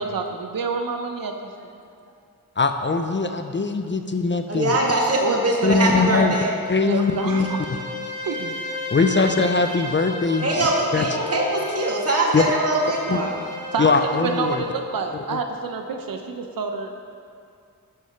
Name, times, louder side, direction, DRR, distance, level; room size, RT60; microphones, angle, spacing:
voice 1, 0.0-1.7 5.2-5.4 6.8-7.6 8.2-8.8 13.7-17.1, right 4 dB, 75° right, 5 dB, 0.8 m, -28 dB
voice 2, 2.6-4.7 5.6-6.3 6.7-7.5 8.9-10.7 10.9-11.1 12.3-12.4 13.1-13.2 13.8-14.6 15.1-15.4, left 4 dB, 35° left, 7 dB, 0.6 m, -21 dB
voice 3, 4.5-6.5 10.4-13.4, right 1 dB, 45° right, -1 dB, 1.9 m, -22 dB
Bowed string instrument, 6.4-14.7, left 2 dB, 30° right, 2.6 m, -34 dB
11.5 x 6.3 x 5.8 m, 2.3 s
wide cardioid pair, 95°, 34 cm